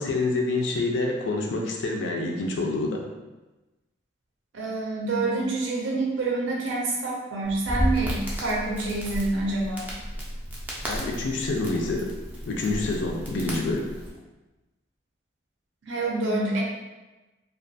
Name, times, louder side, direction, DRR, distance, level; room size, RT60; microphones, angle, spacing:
voice 1, 0.0-3.0 10.9-12.1 12.4-13.9, left 2 dB, 70° left, 0 dB, 0.3 m, -27 dB
voice 2, 4.5-9.9 15.8-16.6, right 2 dB, 75° right, -3 dB, 0.5 m, -27 dB
Crackle, 7.4-14.1, equal, 10° right, 0.3 m, -33 dB
2.4 x 2.2 x 2.6 m, 1.1 s
head